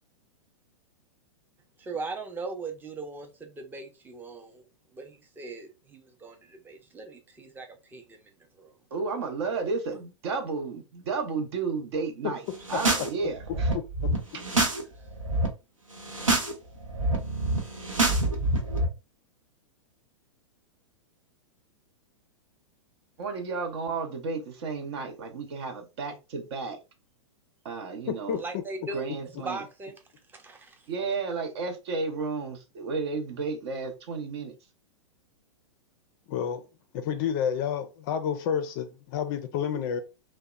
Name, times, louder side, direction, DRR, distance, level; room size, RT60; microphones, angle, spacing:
voice 1, 1.8-4.6 4.9-7.7 7.9-8.0 8.6-8.7 16.3-16.5 28.4-29.9 30.3-30.8, right 3 dB, 10° right, 0.5 m, -39 dB
voice 2, 8.9-12.4 12.7-13.7 14.3-14.4 23.2-26.8 27.6-28.4 28.9-29.6 30.9-34.5, right 4 dB, 55° right, 0.7 m, -32 dB
sound 1, 12.5-13.1 13.4-14.8 15.1-15.5 15.9-16.5 16.8-18.9, right 2 dB, 90° right, 0.9 m, -26 dB
voice 3, 13.7-14.1 28.1-28.6 36.3-36.6 36.9-40.0, left 8 dB, 40° left, 0.4 m, -30 dB
2.7 x 2.1 x 2.3 m
figure-of-eight pair, 105°, 16 cm